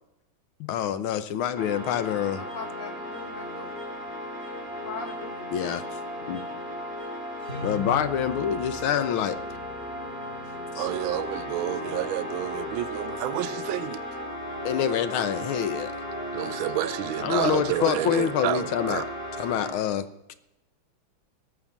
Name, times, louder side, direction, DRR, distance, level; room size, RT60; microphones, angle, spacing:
voice 1, 0.6-2.4 5.5-5.8 6.3-6.4 7.6-9.4 10.7-10.9 14.6-15.9 17.2-19.0 19.4-20.3, left 9 dB, 85° left, 1.7 m, -26 dB
sound 1, 1.5-19.7, left 1 dB, 30° left, 2.6 m, -35 dB
voice 2, 2.3-3.7 4.8-5.8, left 4 dB, 65° left, 2.3 m, -40 dB
voice 3, 10.8-14.0 16.3-19.1, right 14 dB, 80° right, 1.4 m, -30 dB
19.0 x 6.3 x 7.2 m
omnidirectional pair, 2.2 m